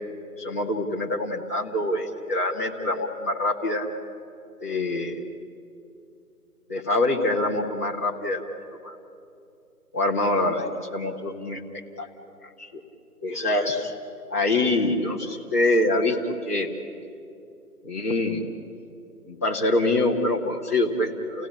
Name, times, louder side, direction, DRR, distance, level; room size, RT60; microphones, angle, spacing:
voice 1, 0.4-3.9 4.6-5.2 6.7-8.4 8.8-8.9 9.9-12.1 12.6-12.8 13.2-13.9 14.3-16.7 17.8-18.5 19.3-21.5, left 2 dB, 10° left, -5 dB, 0.9 m, -25 dB
29.5 x 17.0 x 9.9 m, 2.6 s
figure-of-eight pair, 155°, 47 cm